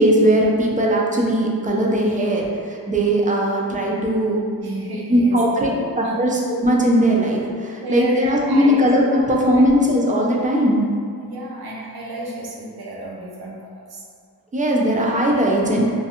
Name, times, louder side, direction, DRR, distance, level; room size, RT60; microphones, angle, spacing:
voice 1, 0.0-4.4 5.1-10.8 14.5-15.9, equal, 20° right, -2 dB, 0.4 m, -19 dB
voice 2, 4.6-5.4 5.7-6.2 7.8-8.9 9.1-9.2 9.6-9.7 11.2-14.0, equal, 70° right, -4 dB, 0.7 m, -31 dB
2.4 x 2.3 x 2.8 m, 2.2 s
cardioid pair, 60°, 38 cm